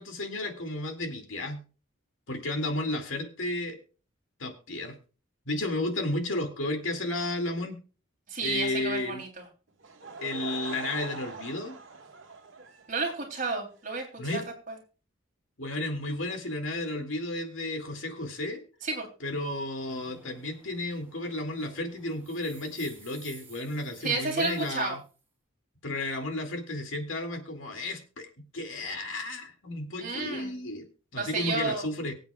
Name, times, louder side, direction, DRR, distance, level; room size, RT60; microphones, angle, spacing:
voice 1, 0.0-1.6 2.3-3.8 4.4-5.0 5.5-7.8 8.4-9.2 10.2-11.8 14.2-14.4 15.6-18.6 19.2-25.0 25.8-28.3 28.5-32.1, left 2 dB, 80° left, 5 dB, 2.3 m, -33 dB
voice 2, 8.3-9.5 12.9-14.4 14.7-14.8 18.8-19.1 24.0-25.0 30.0-30.5 31.2-31.8, right 3 dB, 45° right, 2 dB, 3.1 m, -31 dB
Laughter / Crowd, 9.8-13.3, right 4 dB, 75° right, 1.8 m, -42 dB
sound 1, 19.8-25.2, right 3 dB, 10° right, 3.2 m, -54 dB
23.5 x 7.9 x 2.3 m, 0.35 s
head